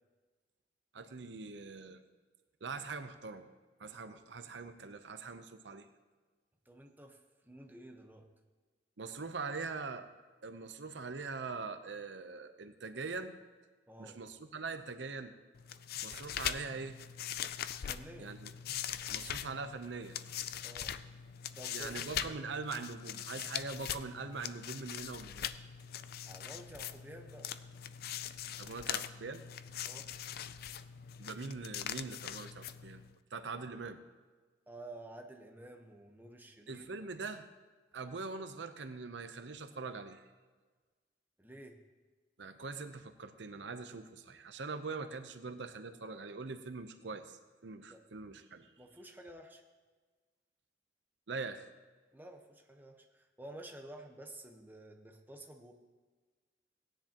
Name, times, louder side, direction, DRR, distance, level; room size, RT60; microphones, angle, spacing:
voice 1, 0.9-2.0 2.6-3.5 3.8-5.8 9.0-10.1 10.4-13.3 14.0-15.3 16.0-17.0 18.2-18.5 19.1-20.2 21.7-25.5 28.6-29.4 31.2-33.0 33.3-34.0 36.7-37.5 37.9-40.3 42.4-48.7 51.3-51.6, right 4 dB, 75° right, 9 dB, 0.7 m, -42 dB
voice 2, 6.7-8.3 13.9-14.2 17.9-18.4 20.6-21.0 21.5-22.0 26.3-27.5 29.9-30.1 34.7-36.9 41.4-41.8 47.9-48.0 48.8-49.6 52.1-55.7, right 1 dB, 10° right, 3 dB, 1.1 m, -51 dB
sound 1, 15.5-33.2, left 9 dB, 55° left, 0.4 m, -42 dB
17.5 x 10.0 x 2.9 m, 1.4 s
head